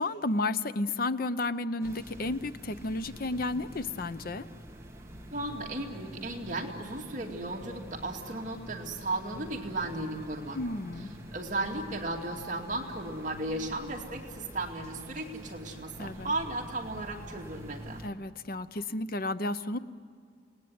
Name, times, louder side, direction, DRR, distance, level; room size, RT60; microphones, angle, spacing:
voice 1, 0.0-4.5 10.5-11.1 16.0-16.3 18.0-19.8, left 2 dB, 50° left, 12 dB, 0.8 m, -32 dB
sound 1, 1.8-18.1, equal, 15° right, 2.1 m, -46 dB
voice 2, 5.3-10.6 11.3-18.1, right 2 dB, 45° right, 1 dB, 2.6 m, -35 dB
29.0 x 19.5 x 9.5 m, 2.1 s
head